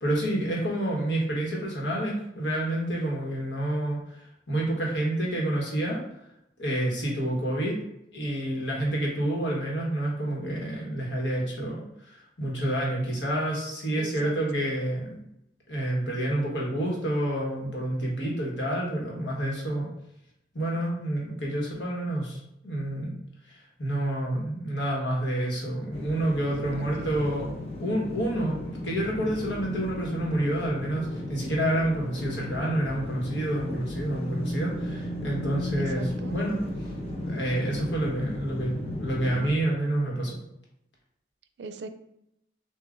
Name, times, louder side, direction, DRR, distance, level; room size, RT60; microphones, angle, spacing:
voice 1, 0.0-6.0 6.6-7.8 8.1-15.2 15.7-19.9 20.5-23.1 23.4-36.6 37.2-40.4, right 1 dB, 90° left, -3 dB, 1.3 m, -29 dB
voice 2, 14.0-14.3 14.6-14.7 26.7-27.1 35.8-36.4 41.6-41.9, right 3 dB, 75° right, 9 dB, 0.4 m, -40 dB
sound 1, 25.9-39.5, left 1 dB, 35° left, 0.6 m, -35 dB
6.6 x 2.4 x 2.5 m, 0.82 s
head